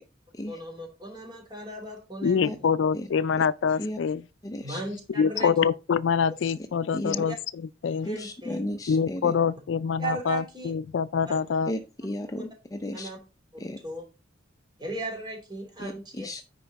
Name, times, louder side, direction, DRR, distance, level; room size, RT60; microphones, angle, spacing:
voice 1, 0.5-2.7 4.6-5.5 7.1-7.4 8.0-8.6 10.0-10.7 11.2-11.4 12.3-12.4 12.9-13.2 13.6-14.0 14.8-16.3, right 2 dB, 25° right, 3.0 m, -37 dB
voice 2, 2.2-4.2 5.2-7.3 7.8-8.1 8.9-11.7, left 6 dB, 75° left, 0.4 m, -25 dB
voice 3, 4.4-4.8 6.9-7.2 8.0-9.3 11.7-13.1 13.6-13.8 15.8-16.5, left 1 dB, 20° left, 0.6 m, -34 dB
9.2 x 5.3 x 4.0 m
head